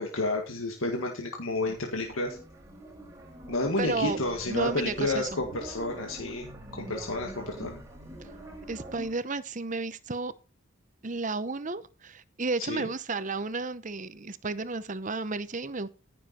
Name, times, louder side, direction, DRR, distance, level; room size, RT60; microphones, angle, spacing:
voice 1, 0.0-2.4 3.5-6.5 6.8-7.7 12.7-12.9, left 2 dB, 80° left, 1.9 m, -30 dB
sound 1, 1.7-9.1, right 1 dB, 15° right, 4.6 m, -44 dB
voice 2, 3.8-4.2 4.5-5.4 8.7-10.3 11.0-15.9, right 3 dB, 35° right, 0.8 m, -32 dB
14.5 x 7.0 x 4.3 m
head